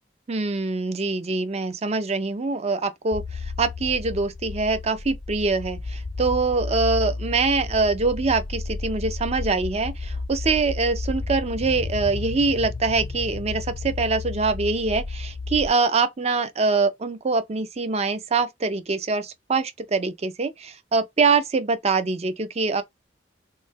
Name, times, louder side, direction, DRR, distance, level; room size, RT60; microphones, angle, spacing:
voice 1, 0.3-22.8, right 4 dB, 40° right, 0.5 m, -24 dB
sound 1, 3.1-15.7, left 3 dB, 25° left, 0.3 m, -32 dB
3.2 x 2.1 x 3.4 m
head